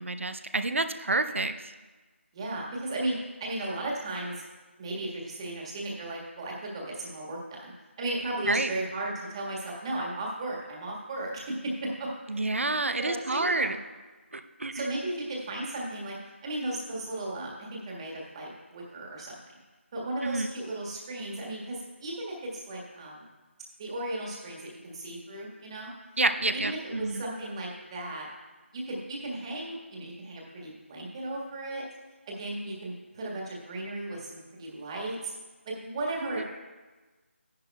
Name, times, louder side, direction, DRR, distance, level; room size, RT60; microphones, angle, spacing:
voice 1, 0.0-1.7 8.4-8.7 12.3-13.8 14.3-14.9 20.2-20.5 26.2-27.2 36.3-36.4, right 2 dB, 70° right, 9 dB, 0.7 m, -29 dB
voice 2, 2.3-4.4 4.8-7.7 8.0-12.4 13.0-13.7 14.7-19.4 19.9-23.3 23.8-25.9 26.5-28.3 28.7-31.8 32.3-35.3 35.6-36.4, right 1 dB, 25° right, -3 dB, 1.7 m, -35 dB
14.0 x 10.5 x 2.3 m, 1.3 s
figure-of-eight pair, 160°, 7 cm